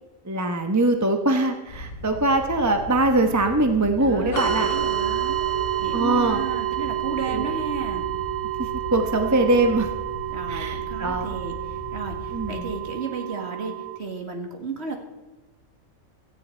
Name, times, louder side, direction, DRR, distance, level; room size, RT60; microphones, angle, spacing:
voice 1, 0.2-4.7 5.9-6.4 7.3-7.4 8.9-9.9 10.5-11.4 12.3-12.7, right 2 dB, 15° right, 5 dB, 0.9 m, -22 dB
sound 1, 1.7-12.7, left 2 dB, 70° left, 4.9 m, -38 dB
voice 2, 4.0-5.4 5.8-8.1 10.3-15.0, right 4 dB, 50° right, 3 dB, 2.1 m, -33 dB
sound 2, 4.3-9.1, left 4 dB, 85° left, 1.9 m, -39 dB
sound 3, 4.4-14.0, right 13 dB, 65° right, 1.1 m, -29 dB
17.0 x 13.5 x 4.5 m, 1.2 s
omnidirectional pair, 1.5 m